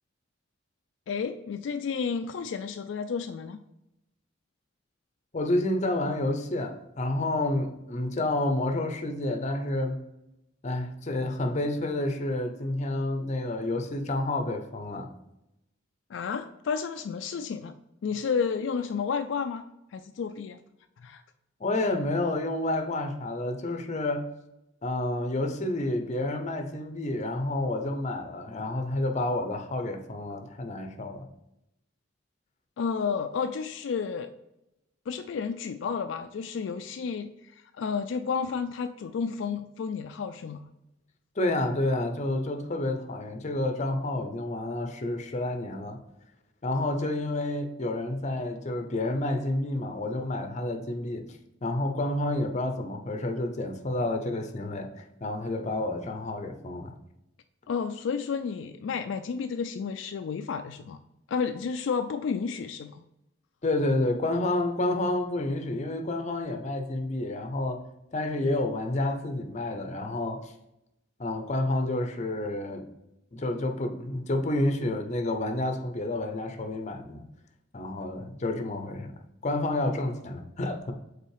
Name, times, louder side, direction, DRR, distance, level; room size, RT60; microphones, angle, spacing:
voice 1, 1.1-3.6 16.1-17.8 18.0-19.6 19.9-20.6 21.0-21.2 32.8-34.3 35.1-40.7 57.7-61.0 61.3-63.0, left 6 dB, 70° left, 8 dB, 0.3 m, -31 dB
voice 2, 5.3-10.0 10.6-15.1 21.6-24.3 24.8-31.3 41.4-46.0 46.6-51.2 51.6-56.9 63.6-67.8 68.1-70.5 71.2-72.9 73.3-77.2 77.7-79.1 79.4-80.9, left 2 dB, 40° left, 6 dB, 0.7 m, -29 dB
5.5 x 4.0 x 4.8 m, 0.88 s
head